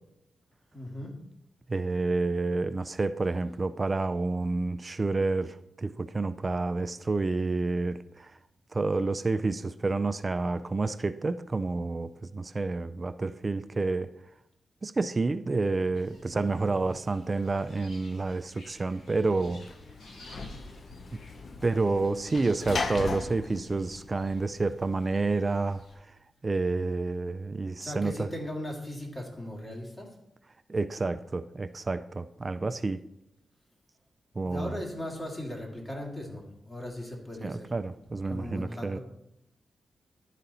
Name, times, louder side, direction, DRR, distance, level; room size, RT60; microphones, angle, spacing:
voice 1, 0.7-1.1 27.8-30.1 34.4-37.8 38.3-39.0, left 1 dB, 30° left, 2.3 m, -38 dB
voice 2, 1.7-8.3 8.7-14.1 14.8-19.7 21.6-25.8 26.4-28.3 30.7-33.0 34.4-34.8 37.4-39.0, right 3 dB, 35° right, 0.3 m, -29 dB
sound 1, 15.9-25.9, left 1 dB, 85° left, 1.8 m, -55 dB
Sliding door / Slam, 19.0-24.8, left 4 dB, 55° left, 0.6 m, -38 dB
11.0 x 4.1 x 4.0 m
cardioid pair, 60°, 0 cm